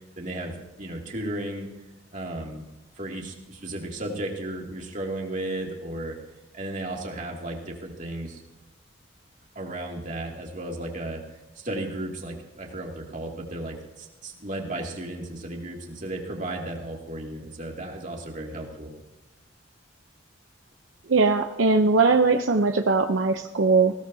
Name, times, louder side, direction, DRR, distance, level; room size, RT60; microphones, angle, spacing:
voice 1, 0.2-1.7 2.1-2.7 3.0-6.2 6.5-8.4 9.5-11.2 11.6-18.9, right 1 dB, 40° right, 0 dB, 2.5 m, -34 dB
voice 2, 21.1-23.9, right 4 dB, 75° right, 5 dB, 0.7 m, -20 dB
20.0 x 16.5 x 2.8 m, 1.0 s
head